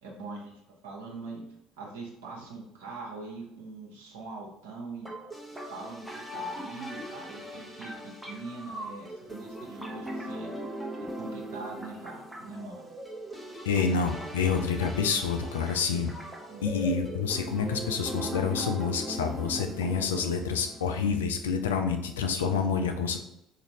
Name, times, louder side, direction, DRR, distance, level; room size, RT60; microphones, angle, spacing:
voice 1, 0.0-0.5 0.8-1.4 1.8-5.1 5.5-10.5 11.1-12.9 16.4-16.6, right 3 dB, 70° right, -3 dB, 0.8 m, -42 dB
sound 1, 5.1-21.0, equal, 5° right, 0.8 m, -39 dB
voice 2, 13.7-16.1 16.6-23.2, left 5 dB, 75° left, 5 dB, 0.4 m, -28 dB
3.9 x 2.5 x 3.1 m, 0.83 s
figure-of-eight pair, 60°, 0 cm